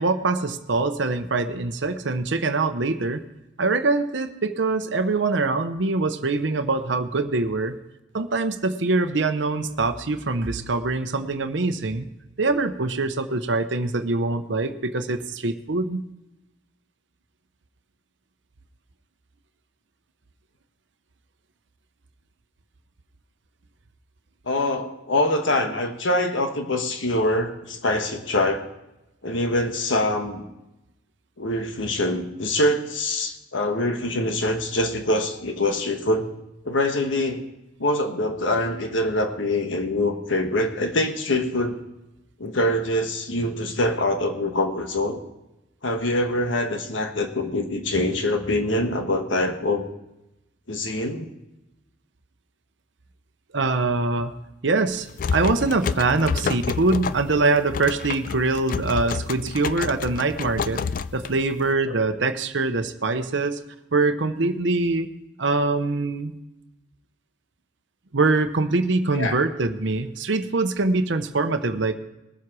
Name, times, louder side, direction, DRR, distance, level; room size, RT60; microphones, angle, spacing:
voice 1, 0.0-3.2 3.6-7.8 8.1-12.0 12.4-16.0 53.5-54.3 54.6-60.8 61.1-63.6 63.9-65.1 65.4-66.3 68.1-71.9, right 3 dB, 70° right, 8 dB, 0.8 m, -23 dB
voice 2, 24.5-28.7 29.2-30.4 31.4-36.3 36.6-37.4 37.8-41.8 42.4-45.2 45.8-49.8 50.7-51.3 69.1-69.4, left 1 dB, 85° left, 5 dB, 1.3 m, -24 dB
sound 1, 54.9-61.7, left 5 dB, 45° left, 0.3 m, -29 dB
20.0 x 7.7 x 4.8 m, 0.95 s
head